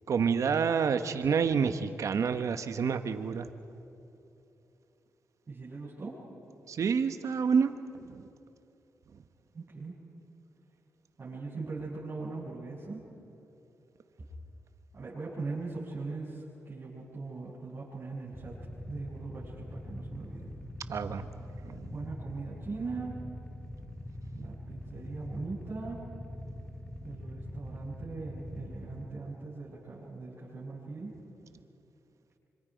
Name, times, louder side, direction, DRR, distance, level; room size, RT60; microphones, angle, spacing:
voice 1, 0.0-3.5 6.7-7.7 8.1-8.2 20.9-21.3 21.6-21.9, right 6 dB, 65° right, 10 dB, 1.1 m, -28 dB
voice 2, 5.5-6.1 9.5-9.9 11.2-13.0 14.9-18.5 18.9-20.5 21.9-23.2 24.3-26.0 27.0-31.1, right 3 dB, 45° right, -9 dB, 7.6 m, -40 dB
Motorcycle / Idling, 18.3-29.0, left 1 dB, 25° left, 2.4 m, -43 dB
27.0 x 25.5 x 5.2 m, 2.9 s
cardioid pair, 65°, 6 cm